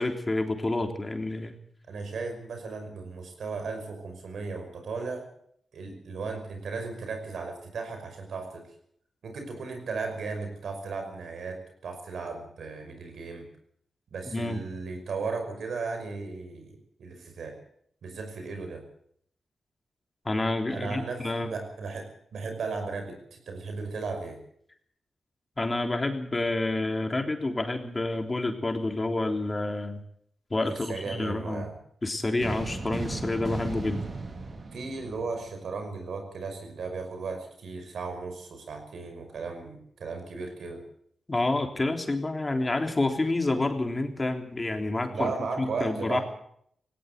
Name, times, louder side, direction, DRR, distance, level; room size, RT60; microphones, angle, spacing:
voice 1, 0.0-1.6 14.3-14.6 20.2-21.5 25.6-30.0 30.5-31.6 32.0-34.0 41.3-45.3 45.6-46.2, left 2 dB, 30° left, 4 dB, 3.5 m, -28 dB
voice 2, 1.9-5.3 5.7-8.7 9.2-13.5 14.1-17.6 18.0-18.8 20.7-24.4 30.7-31.7 34.7-40.9 45.1-46.2, right 4 dB, 80° right, 6 dB, 5.5 m, -36 dB
sound 1, 32.4-35.8, right 3 dB, 50° right, 4.0 m, -36 dB
18.0 x 17.5 x 8.2 m, 0.68 s
cardioid pair, 55°, 0 cm